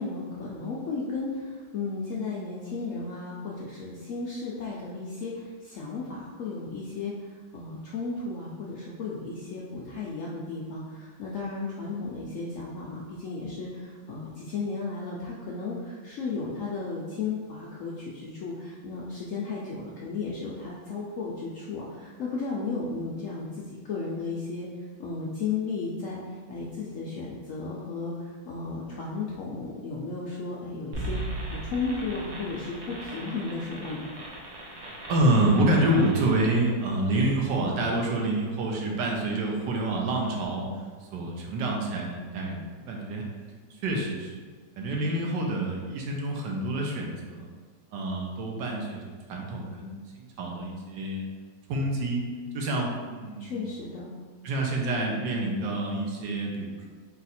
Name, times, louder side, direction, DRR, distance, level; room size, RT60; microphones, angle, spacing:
voice 1, 0.0-7.1 7.5-24.7 25.0-26.2 26.5-31.2 31.5-34.0 53.4-54.1, left 4 dB, 75° left, -5 dB, 0.7 m, -34 dB
sound 1, 30.9-36.4, right 1 dB, 50° right, 0.9 m, -38 dB
voice 2, 35.1-40.7 41.0-43.3 43.8-44.4 44.8-47.5 47.9-51.3 51.7-52.2 52.5-53.9 54.4-56.9, right 1 dB, 80° right, 0 dB, 1.3 m, -27 dB
4.0 x 2.4 x 4.1 m, 1.5 s
omnidirectional pair, 1.9 m